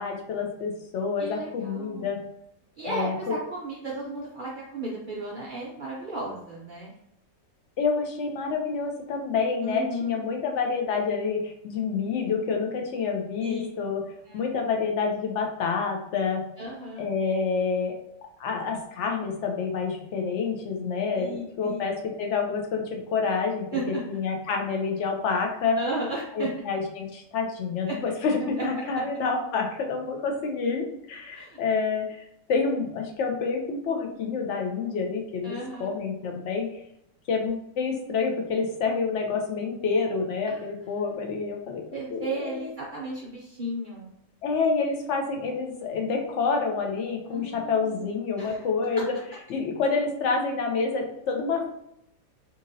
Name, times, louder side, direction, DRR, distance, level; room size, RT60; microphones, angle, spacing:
voice 1, 0.0-2.2 2.8-3.3 7.8-14.0 14.3-16.4 17.0-18.0 18.4-23.7 24.1-25.8 26.3-36.7 37.3-41.8 42.1-42.5 44.4-49.1 49.5-51.7, left 5 dB, 60° left, 1 dB, 0.9 m, -28 dB
voice 2, 1.2-2.1 2.8-6.9 9.6-10.2 13.4-13.7 14.2-14.5 16.6-17.1 21.1-21.9 23.7-24.0 25.7-26.5 27.9-28.0 31.3-31.6 35.4-36.0 40.5-40.7 41.9-44.1 47.3-48.1 48.4-48.6, right 1 dB, 70° right, -4 dB, 0.4 m, -34 dB
2.9 x 2.6 x 2.6 m, 0.78 s
omnidirectional pair, 1.5 m